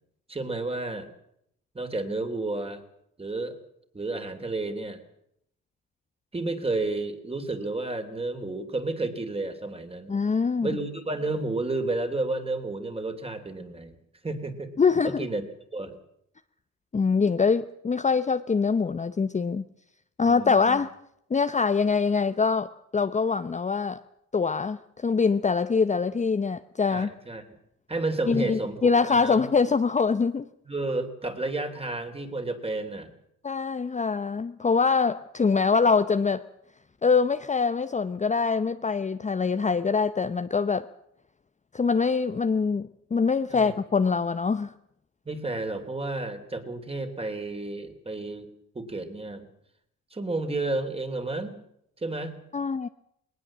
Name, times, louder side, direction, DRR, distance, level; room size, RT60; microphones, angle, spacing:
voice 1, 0.3-1.1 1.7-2.8 3.2-3.6 3.9-5.0 6.3-10.1 10.6-14.0 14.2-14.7 15.0-15.4 15.7-16.0 20.2-20.8 26.9-27.4 27.9-28.8 29.1-29.4 30.7-33.1 43.5-43.7 45.2-48.5 48.7-49.5 50.1-51.6 52.0-52.3, right 2 dB, 20° right, 7 dB, 3.2 m, -31 dB
voice 2, 10.1-10.7 14.8-15.3 16.9-19.7 20.2-20.9 21.3-24.0 24.3-27.1 28.3-30.4 33.4-36.4 37.0-40.9 41.7-44.7 52.5-52.9, left 5 dB, 25° left, 10 dB, 0.8 m, -24 dB
20.0 x 19.0 x 7.5 m, 0.74 s
cardioid pair, 90°, 30 cm